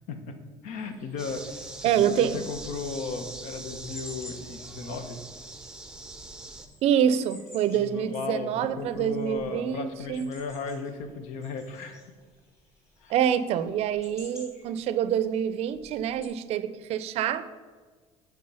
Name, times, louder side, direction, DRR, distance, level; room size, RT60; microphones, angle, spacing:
voice 1, 0.6-5.2 7.8-12.0 13.0-13.1, left 4 dB, 75° left, 8 dB, 0.9 m, -36 dB
sound 1, 0.7-16.3, left 1 dB, 20° left, 2.4 m, -53 dB
sound 2, 1.2-6.7, right 2 dB, 5° right, 0.6 m, -42 dB
voice 2, 1.8-2.4 6.8-10.3 13.1-17.4, right 9 dB, 55° right, 14 dB, 0.5 m, -26 dB
9.5 x 3.6 x 5.5 m, 1.4 s
cardioid pair, 130°, 12 cm